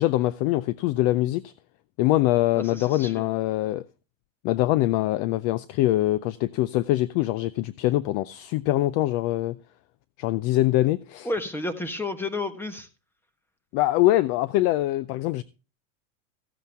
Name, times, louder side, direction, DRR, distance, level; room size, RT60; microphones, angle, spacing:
voice 1, 0.0-1.5 2.0-3.8 4.4-9.6 10.2-11.3 13.7-15.4, left 16 dB, 40° left, 0.4 m, -23 dB
voice 2, 2.5-3.3 11.2-12.9, left 2 dB, 5° left, 1.3 m, -31 dB
15.0 x 8.2 x 3.4 m
supercardioid pair, 125°, 41 cm